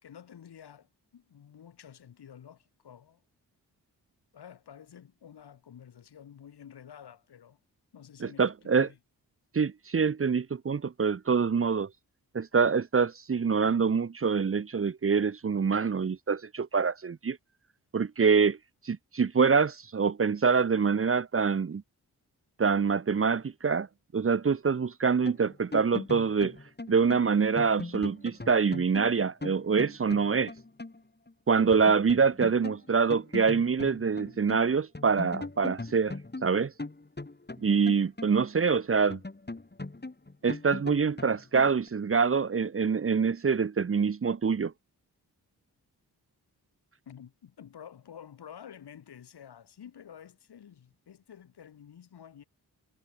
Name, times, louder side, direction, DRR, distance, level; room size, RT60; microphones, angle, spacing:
voice 1, 0.0-3.2 4.3-7.6 7.9-9.0 47.0-52.4, left 8 dB, 80° left, 5.0 m, -50 dB
voice 2, 8.2-8.9 9.5-11.9 12.3-17.4 17.9-18.6 18.8-21.8 22.6-23.9 24.1-26.6 26.9-30.5 31.5-36.2 36.4-36.7 37.6-39.2 40.4-44.7, right 5 dB, 35° right, 0.8 m, -25 dB
sound 1, 25.2-31.0 31.3-31.4 31.7-34.7 34.9-38.7 39.1-41.9, left 2 dB, 25° left, 6.2 m, -40 dB
cardioid pair, 50°, 39 cm